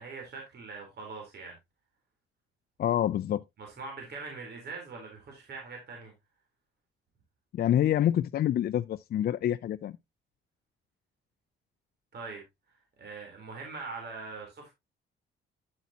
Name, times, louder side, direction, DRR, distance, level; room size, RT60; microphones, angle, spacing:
voice 1, 0.0-1.6 3.6-6.1 12.1-12.4 13.0-14.7, right 4 dB, 55° right, 3.6 m, -42 dB
voice 2, 2.8-3.4 7.5-10.0, left 11 dB, 55° left, 0.4 m, -27 dB
9.6 x 8.0 x 2.8 m
cardioid pair, 90°, 20 cm